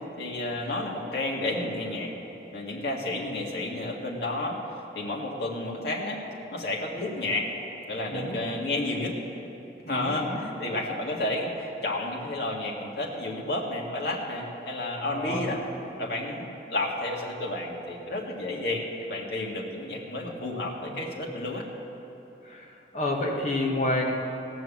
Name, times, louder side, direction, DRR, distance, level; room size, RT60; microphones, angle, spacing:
voice 1, 0.2-2.1 2.5-4.6 4.9-6.2 6.5-7.5 7.9-9.2 9.9-15.6 16.0-21.6, left 2 dB, 70° left, -2 dB, 1.9 m, -31 dB
voice 2, 8.1-8.4 9.8-10.4 15.1-15.5 20.6-21.0 22.4-24.1, left 1 dB, 40° left, -1 dB, 1.6 m, -30 dB
17.5 x 6.2 x 7.3 m, 3.0 s
head